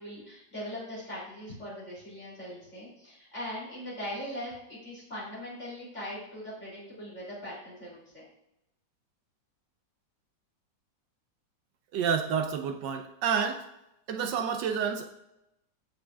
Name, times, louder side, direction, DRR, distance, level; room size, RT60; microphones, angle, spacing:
voice 1, 0.0-8.2, equal, 35° left, -7 dB, 3.2 m, -40 dB
voice 2, 11.9-13.7 14.1-15.1, right 7 dB, 75° right, 5 dB, 1.2 m, -29 dB
14.0 x 5.3 x 2.3 m, 0.87 s
omnidirectional pair, 2.1 m